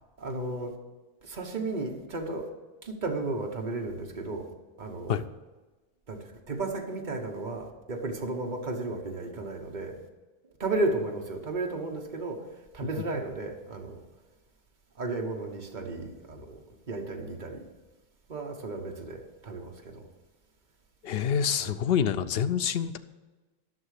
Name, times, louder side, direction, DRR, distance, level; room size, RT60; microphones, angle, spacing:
voice 1, 0.2-0.7 1.2-2.5 2.8-4.5 4.8-5.3 6.1-10.0 10.6-12.4 12.7-14.0 14.9-16.6 16.9-17.7 18.3-20.1 21.6-21.8, right 2 dB, 50° right, 2 dB, 1.4 m, -34 dB
voice 2, 21.0-23.0, left 8 dB, 70° left, 11 dB, 0.8 m, -27 dB
12.0 x 6.3 x 6.5 m, 1.2 s
omnidirectional pair, 1.1 m